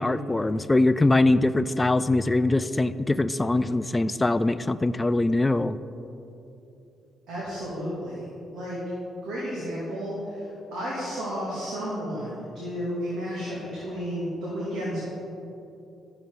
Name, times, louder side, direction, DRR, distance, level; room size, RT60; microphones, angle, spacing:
voice 1, 0.0-5.8, left 2 dB, 15° left, 13 dB, 0.3 m, -22 dB
voice 2, 7.3-8.8 9.2-15.1, equal, 85° right, -7 dB, 2.2 m, -32 dB
12.5 x 7.0 x 3.8 m, 2.9 s
cardioid pair, 90°, 0 cm